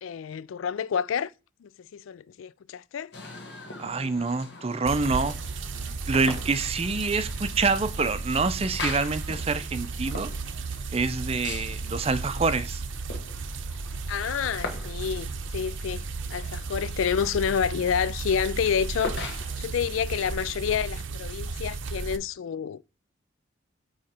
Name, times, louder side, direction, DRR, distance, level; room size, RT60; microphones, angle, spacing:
voice 1, 0.0-1.3 1.6-3.1 14.1-22.8, left 7 dB, 85° left, 0.3 m, -29 dB
sound 1, 3.1-20.0, left 3 dB, 60° left, 1.3 m, -42 dB
voice 2, 3.8-5.4 6.1-10.3 10.9-12.8, right 4 dB, 30° right, 0.5 m, -26 dB
sound 2, 4.9-22.2, right 4 dB, 75° right, 0.6 m, -34 dB
8.7 x 3.2 x 4.3 m
head